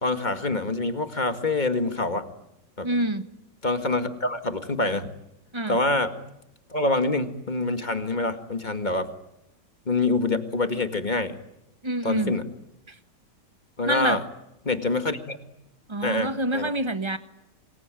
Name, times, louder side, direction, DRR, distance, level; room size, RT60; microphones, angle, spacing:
voice 1, 0.0-2.3 2.8-2.9 3.6-5.1 5.7-6.1 6.7-9.1 9.9-11.3 12.0-12.5 13.8-14.2 14.7-15.4 16.0-16.7, left 2 dB, 25° left, 8 dB, 1.9 m, -26 dB
voice 2, 2.8-3.2 5.5-5.8 11.8-12.3 12.9-13.0 13.8-14.2 15.9-17.2, right 1 dB, 20° right, 11 dB, 1.2 m, -27 dB
27.0 x 21.5 x 9.0 m, 0.88 s
omnidirectional pair, 1.9 m